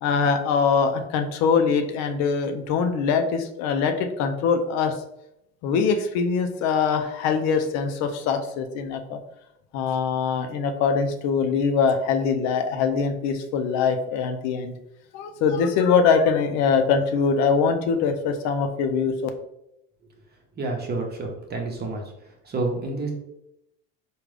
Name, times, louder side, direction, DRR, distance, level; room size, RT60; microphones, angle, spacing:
voice 1, 0.0-4.9 5.6-9.2 9.7-14.7 15.1-19.3, left 5 dB, 65° left, 6 dB, 0.5 m, -23 dB
voice 2, 20.6-22.0 22.4-23.1, right 2 dB, 35° right, 2 dB, 0.9 m, -29 dB
3.5 x 2.3 x 3.3 m, 0.82 s
hypercardioid pair, 80°, 30 cm